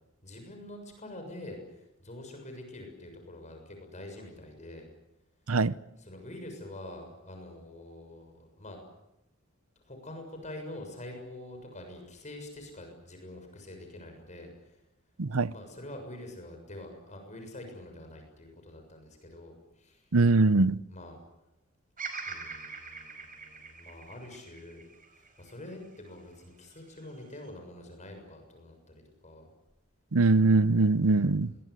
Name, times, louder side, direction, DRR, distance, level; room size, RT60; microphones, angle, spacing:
voice 1, 0.2-4.9 6.0-8.8 9.8-14.8 15.5-20.3 20.9-21.2 22.2-24.8 25.1-29.5 31.0-31.6, left 1 dB, 35° left, 6.8 m, -46 dB
voice 2, 15.2-15.5 20.1-20.8 30.1-31.5, right 3 dB, 80° right, 0.8 m, -22 dB
Bird vocalization bird call bird song, 22.0-26.2 26.7-27.5, right 4 dB, 40° right, 5.2 m, -43 dB
25.5 x 22.0 x 8.1 m
head